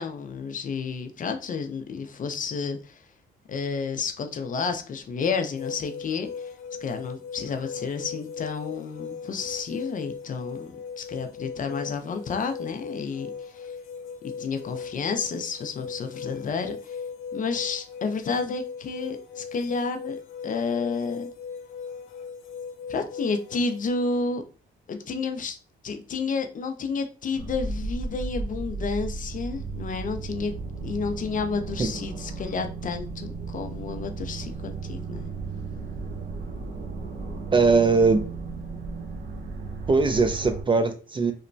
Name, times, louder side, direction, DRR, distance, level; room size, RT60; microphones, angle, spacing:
voice 1, 0.0-3.0 3.5-6.5 6.8-13.7 14.4-17.0 17.3-21.3 22.9-24.4 24.9-25.6 25.8-30.5 30.8-35.3, left 4 dB, 40° left, 0.5 m, -31 dB
sound 1, 5.6-23.9, left 6 dB, 85° left, 0.6 m, -38 dB
sound 2, 27.3-40.6, right 3 dB, 55° right, 0.7 m, -35 dB
voice 2, 37.5-38.2 39.9-41.3, right 4 dB, 25° right, 0.3 m, -20 dB
3.0 x 2.1 x 2.5 m
cardioid pair, 90°, 20 cm